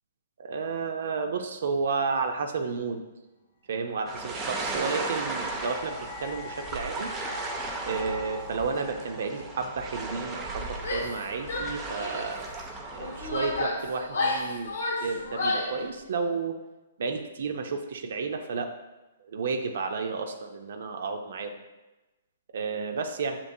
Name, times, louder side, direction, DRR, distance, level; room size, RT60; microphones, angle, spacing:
voice 1, 0.4-3.0 3.7-7.1 7.8-12.5 12.9-14.7 15.0-16.6 17.0-18.7 19.2-21.6 22.5-23.4, right 4 dB, 65° right, 5 dB, 0.4 m, -32 dB
sound 1, 4.0-11.1, left 3 dB, 45° left, 0.5 m, -44 dB
sound 2, 4.1-13.6, right 3 dB, 15° right, 0.6 m, -36 dB
Female speech woman speaking / Yell, 10.8-11.2 11.5-12.3 13.0-15.8, left 2 dB, 75° left, 1.0 m, -31 dB
6.7 x 2.8 x 2.7 m, 1.1 s
hypercardioid pair, 140°, 0 cm